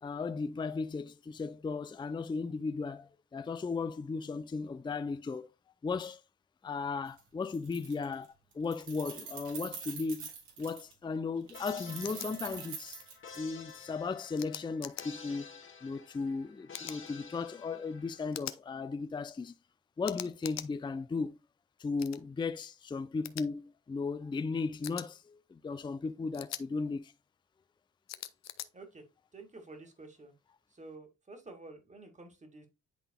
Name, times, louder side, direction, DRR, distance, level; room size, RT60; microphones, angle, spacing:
voice 1, 0.0-5.5 5.8-6.2 6.6-10.3 10.6-13.0 13.4-15.5 15.8-19.5 20.0-21.4 21.8-27.1, left 4 dB, 15° left, 0.5 m, -36 dB
Keys jangling, 7.1-7.2 7.5-8.3 8.5-10.9 11.5-13.7, right 6 dB, 90° right, 1.9 m, -45 dB
sound 1, 11.5-18.4, left 6 dB, 40° left, 1.3 m, -51 dB
sound 2, 12.0-12.3 14.4-15.1 16.7-17.0 18.3-18.6 20.0-20.7 22.0-22.2 23.2-23.4 24.8-25.1 26.3-26.6 28.1-28.7, left 12 dB, 60° left, 0.6 m, -42 dB
voice 2, 28.7-29.0 29.3-30.3 30.7-32.7, right 3 dB, 25° right, 2.0 m, -50 dB
10.5 x 3.9 x 2.3 m
cardioid pair, 90°, 30 cm